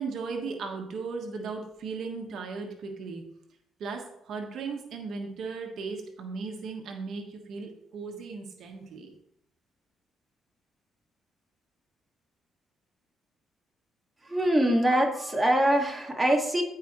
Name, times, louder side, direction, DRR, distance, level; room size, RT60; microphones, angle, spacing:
voice 1, 0.0-3.2 3.8-9.1, right 4 dB, 70° right, 3 dB, 1.3 m, -36 dB
voice 2, 14.3-16.6, right 1 dB, 10° right, 0 dB, 1.8 m, -23 dB
14.5 x 4.9 x 3.1 m, 0.76 s
cardioid pair, 90°, 0 cm